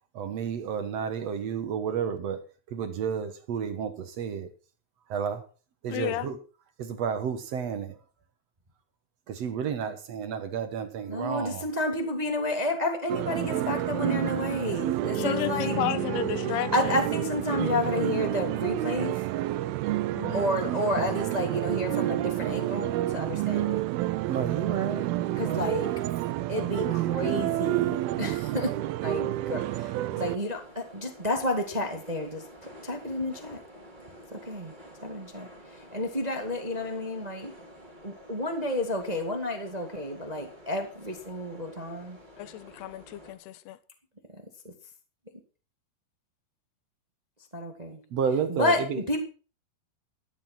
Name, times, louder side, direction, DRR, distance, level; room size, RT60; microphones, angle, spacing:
voice 1, 0.1-2.4 2.7-4.5 5.1-5.4 5.8-6.4 6.8-8.0 9.3-11.6 24.3-25.7 48.1-49.0, right 7 dB, 60° right, 1.7 m, -31 dB
voice 2, 5.9-6.3 15.2-16.9 20.1-20.5 42.4-43.8, left 15 dB, 80° left, 2.9 m, -33 dB
voice 3, 11.1-15.8 16.5-19.2 20.3-23.8 25.4-25.9 26.5-28.7 29.0-33.6 34.3-34.7 35.0-37.5 38.0-42.2 44.3-44.7 47.5-48.0 48.5-49.2, left 1 dB, 35° right, 0.6 m, -31 dB
sound 1, 13.1-30.4, right 15 dB, 75° right, 2.4 m, -29 dB
Bass guitar, 15.2-19.4, left 8 dB, 60° left, 3.0 m, -39 dB
sound 2, 30.3-43.3, equal, 10° right, 3.1 m, -50 dB
13.5 x 10.0 x 6.0 m
omnidirectional pair, 4.8 m